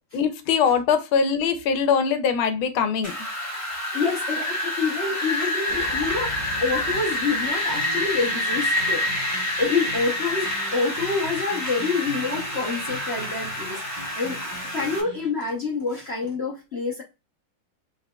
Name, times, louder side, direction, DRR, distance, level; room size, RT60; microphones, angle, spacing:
voice 1, 0.1-3.1, left 6 dB, 85° left, 9 dB, 1.5 m, -22 dB
Wind, 3.0-15.0, left 1 dB, 20° left, 0.4 m, -28 dB
voice 2, 3.9-6.3 6.6-14.4 14.7-17.0, left 4 dB, 55° left, -2 dB, 0.7 m, -27 dB
sound 1, 5.7-15.3, right 1 dB, 25° right, 0.9 m, -40 dB
4.0 x 3.6 x 2.2 m, 0.27 s
omnidirectional pair, 2.2 m